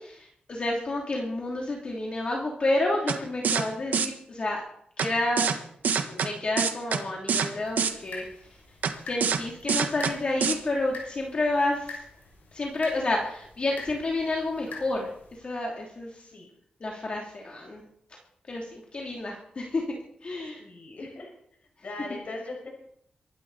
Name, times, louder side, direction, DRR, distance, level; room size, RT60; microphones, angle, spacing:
voice 1, 0.0-4.6 5.0-5.6 6.0-8.2 9.0-12.0 12.5-15.1 15.4-16.1 16.8-17.9 18.5-19.8 20.2-20.6, left 2 dB, 40° left, -1 dB, 2.9 m, -30 dB
sound 1, 3.1-3.2 3.4-3.6 3.9-4.1 5.0-5.1 5.4-5.6 5.8-6.3 6.6-7.0 7.3-7.5 7.8-7.9 8.8-8.9 9.2-9.4 9.7-10.1 10.4-10.5, right 6 dB, 90° right, 1.5 m, -24 dB
sound 2, 7.6-15.4, left 3 dB, 90° left, 6.7 m, -45 dB
voice 2, 20.6-21.3 21.8-22.7, left 2 dB, 55° left, 1 dB, 5.7 m, -39 dB
24.0 x 12.5 x 4.1 m, 0.69 s
wide cardioid pair, 135°, 3 cm